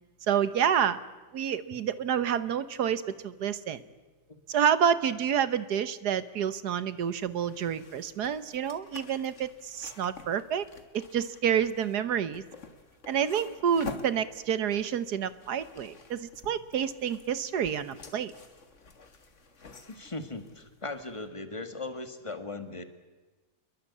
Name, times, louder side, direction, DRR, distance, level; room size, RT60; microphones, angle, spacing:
voice 1, 0.3-1.0 1.3-3.8 4.5-10.6 10.9-12.4 13.1-18.3, right 8 dB, 75° right, 15 dB, 1.6 m, -28 dB
sound 1, 7.0-21.3, left 4 dB, 45° left, 2.1 m, -49 dB
voice 2, 19.9-22.8, left 2 dB, 20° left, 8 dB, 1.9 m, -38 dB
27.0 x 22.5 x 8.5 m, 1.2 s
omnidirectional pair, 1.8 m